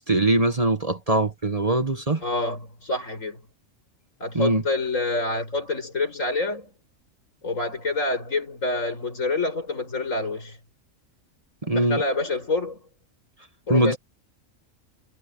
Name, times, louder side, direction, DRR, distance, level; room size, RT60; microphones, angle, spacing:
voice 1, 0.0-2.2 4.3-4.6 11.6-12.0 13.7-14.0, right 2 dB, 25° right, 1.7 m, -22 dB
voice 2, 2.2-3.4 4.2-6.7 7.4-10.6 11.6-12.8 13.7-14.0, left 2 dB, 70° left, 5.9 m, -27 dB
omnidirectional pair, 1.4 m